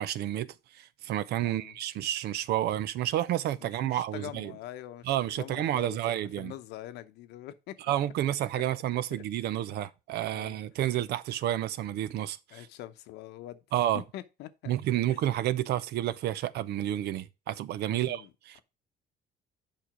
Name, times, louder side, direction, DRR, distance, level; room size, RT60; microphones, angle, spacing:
voice 1, 0.0-4.5 5.1-6.5 7.9-12.7 13.7-14.0 14.7-18.6, right 12 dB, 75° right, 0.6 m, -30 dB
voice 2, 1.4-1.8 3.6-5.1 5.4-6.0 6.4-7.8 8.5-8.6 9.1-9.6 10.3-10.6 12.5-13.6 13.9-14.7 15.1-15.2 17.9-18.3, left 14 dB, 85° left, 0.8 m, -44 dB
7.6 x 5.0 x 4.9 m
cardioid pair, 110°, 17 cm